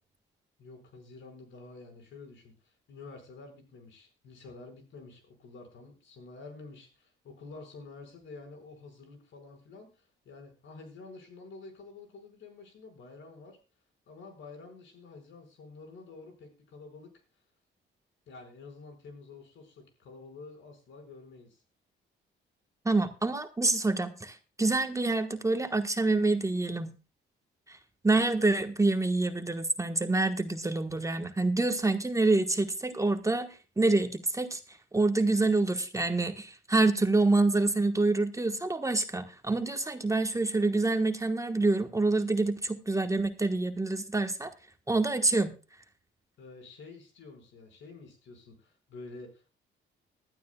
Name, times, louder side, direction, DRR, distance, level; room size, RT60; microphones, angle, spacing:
voice 1, 0.6-13.6 14.1-17.1 18.3-21.6 46.4-49.5, left 3 dB, 75° left, 5 dB, 5.3 m, -49 dB
voice 2, 22.8-26.9 27.7-27.8 28.0-34.6 34.9-44.5 44.9-45.5, right 2 dB, 15° right, 8 dB, 1.2 m, -27 dB
19.5 x 12.0 x 2.3 m, 0.32 s
cardioid pair, 90°, 20 cm